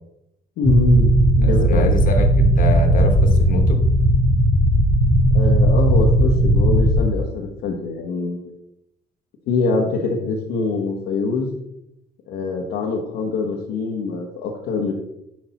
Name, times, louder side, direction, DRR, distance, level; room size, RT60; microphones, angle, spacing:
voice 1, 0.6-1.9 5.3-8.5 9.5-11.5 12.3-14.9, left 3 dB, 80° left, -2 dB, 1.0 m, -23 dB
sound 1, 0.6-7.0, right 1 dB, 75° right, 2.2 m, -16 dB
voice 2, 1.4-3.8, left 2 dB, 55° left, 4 dB, 1.2 m, -26 dB
6.0 x 5.1 x 4.0 m, 0.82 s
cardioid pair, 110°, 17 cm